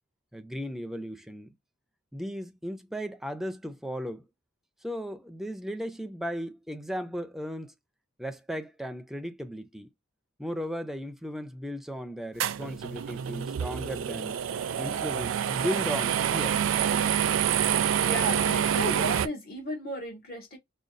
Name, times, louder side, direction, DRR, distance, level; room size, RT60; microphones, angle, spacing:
voice 1, 0.3-1.5 2.1-4.3 4.8-7.7 8.2-9.9 10.4-14.4 14.8-16.6, equal, ahead, 0.4 m, -36 dB
sound 1, 12.4-19.3, right 9 dB, 70° right, 0.4 m, -27 dB
voice 2, 18.0-20.6, equal, 50° left, 1.6 m, -34 dB
5.0 x 2.3 x 2.5 m
head